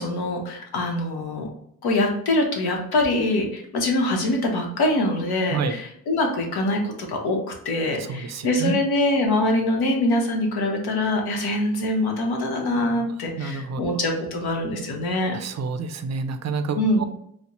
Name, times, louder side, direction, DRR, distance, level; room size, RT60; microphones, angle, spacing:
voice 1, 0.0-1.5 1.8-7.4 7.6-15.3 16.7-17.0, left 1 dB, 90° left, 1 dB, 0.9 m, -24 dB
voice 2, 8.1-8.8 12.8-13.1 13.4-13.8 15.3-17.0, right 4 dB, 50° right, 9 dB, 0.4 m, -28 dB
4.1 x 2.0 x 3.0 m, 0.71 s
cardioid pair, 85°, 37 cm